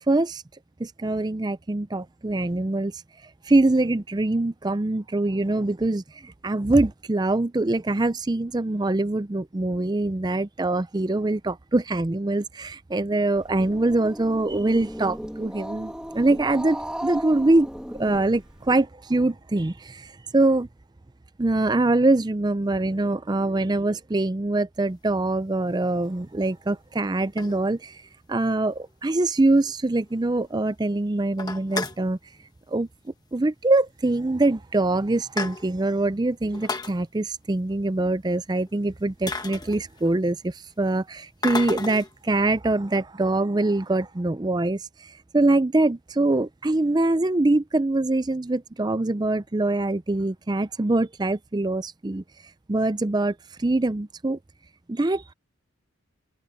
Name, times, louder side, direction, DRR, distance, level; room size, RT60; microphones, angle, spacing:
voice 1, 0.1-0.4 0.8-2.9 3.4-17.7 17.9-20.7 21.4-28.0 28.3-32.2 32.7-32.9 33.3-52.2 52.7-54.4 54.9-55.3, right 2 dB, 20° right, 0.4 m, -24 dB
Growling, 13.4-18.7, equal, 5° right, 1.6 m, -36 dB
sound 1, 25.1-25.3 26.1-26.2 27.0-28.1 28.5-28.6 28.8-28.9 29.3-29.4 29.7-29.8 30.1-30.5 30.9-31.0 31.3-32.1 33.2-33.4 33.7-33.8 34.5-34.6 34.9-35.9 36.5-37.0 38.7-38.8 39.3-40.3 41.4-42.1, left 3 dB, 20° left, 1.1 m, -32 dB
head